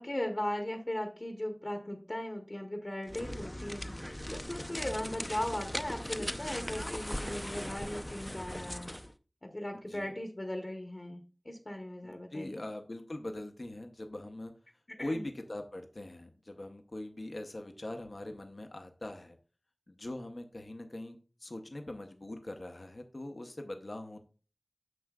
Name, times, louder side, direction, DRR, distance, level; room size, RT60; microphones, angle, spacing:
voice 1, 0.0-3.9 4.3-8.9 9.4-12.6 14.9-15.2, left 1 dB, 50° left, 3 dB, 1.1 m, -38 dB
sound 1, 3.0-9.1, equal, 20° left, 0.5 m, -39 dB
voice 2, 12.0-14.5 15.0-19.4 19.9-24.2, left 1 dB, 70° left, 5 dB, 0.8 m, -42 dB
9.3 x 6.4 x 2.3 m, 0.36 s
wide cardioid pair, 45°, 0 cm